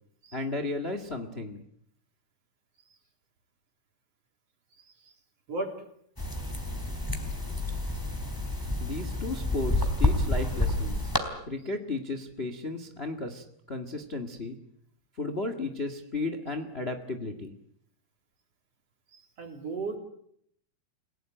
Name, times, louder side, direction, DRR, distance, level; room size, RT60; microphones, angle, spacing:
voice 1, 0.3-1.6 8.8-11.2 11.4-14.6 15.1-17.5, left 2 dB, 50° left, 8 dB, 0.7 m, -34 dB
voice 2, 4.8-5.1 5.5-5.7 19.1-20.0, right 3 dB, 40° right, 5 dB, 4.0 m, -36 dB
sound 1, 6.2-11.2, left 1 dB, 5° left, 2.6 m, -29 dB
29.5 x 18.0 x 9.2 m, 0.70 s
omnidirectional pair, 4.7 m